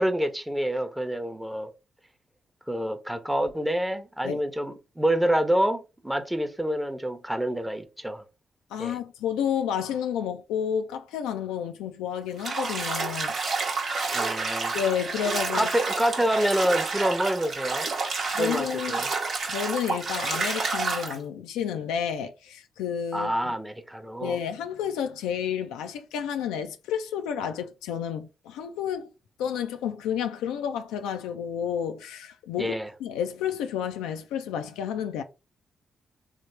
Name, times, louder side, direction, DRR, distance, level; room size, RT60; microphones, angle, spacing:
voice 1, 0.0-1.7 2.7-8.2 8.8-9.0 14.1-14.8 15.5-17.9 18.4-19.1 23.1-24.4 32.6-32.9, right 1 dB, 10° right, 0.7 m, -27 dB
voice 2, 8.7-13.3 14.7-15.7 18.3-19.0 19.4-23.5 24.2-29.1 29.4-32.7 33.0-35.2, left 8 dB, 85° left, 0.3 m, -30 dB
Bathtub (filling or washing), 12.4-21.2, right 4 dB, 65° right, 0.9 m, -29 dB
3.3 x 2.0 x 3.1 m
hypercardioid pair, 40°, 0 cm